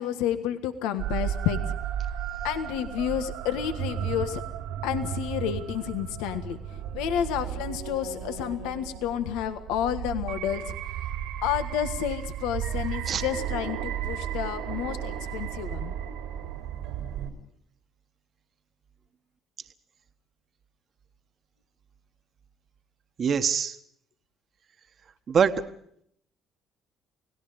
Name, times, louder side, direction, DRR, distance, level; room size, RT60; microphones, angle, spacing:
voice 1, 0.0-1.6 2.4-4.4 4.8-10.7 11.4-15.9, left 10 dB, 90° left, 9 dB, 1.6 m, -30 dB
sound 1, 1.0-17.3, right 10 dB, 85° right, 3.8 m, -34 dB
voice 2, 23.2-23.8 25.3-25.5, right 7 dB, 45° right, 8 dB, 1.4 m, -23 dB
30.0 x 18.0 x 5.3 m, 0.68 s
cardioid pair, 95°, 0 cm